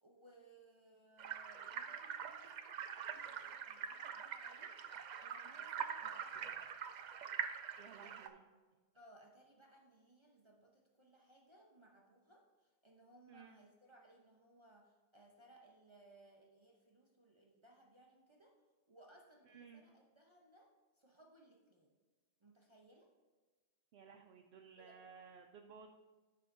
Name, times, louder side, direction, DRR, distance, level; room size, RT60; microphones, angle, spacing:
voice 1, 0.0-6.7 7.6-8.4 8.9-18.6 18.9-20.7 20.9-21.9 22.4-23.1 24.8-25.0, right 1 dB, 30° right, -1 dB, 0.8 m, -65 dB
sound 1, 1.2-8.3, right 7 dB, 55° right, 0.5 m, -44 dB
voice 2, 7.8-8.5 13.3-13.6 19.4-19.8 23.9-25.9, right 6 dB, 90° right, 3 dB, 0.8 m, -57 dB
12.5 x 5.6 x 2.6 m, 1.3 s
omnidirectional pair, 1.1 m